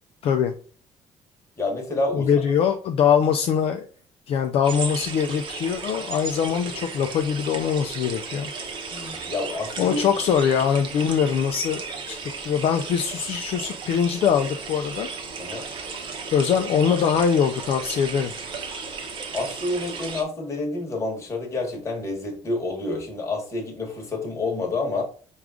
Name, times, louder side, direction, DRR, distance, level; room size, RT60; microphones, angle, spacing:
voice 1, 0.2-0.5 2.1-3.9 4.3-8.5 9.8-15.1 16.3-18.3, left 7 dB, 55° left, 5 dB, 0.4 m, -22 dB
voice 2, 1.6-2.3 8.9-10.0 15.4-15.7 19.3-25.0, left 2 dB, 25° left, 1 dB, 1.2 m, -28 dB
sound 1, 4.6-20.2, right 4 dB, 45° right, 0.8 m, -35 dB
4.7 x 2.4 x 3.6 m, 0.42 s
cardioid pair, 155°, 12 cm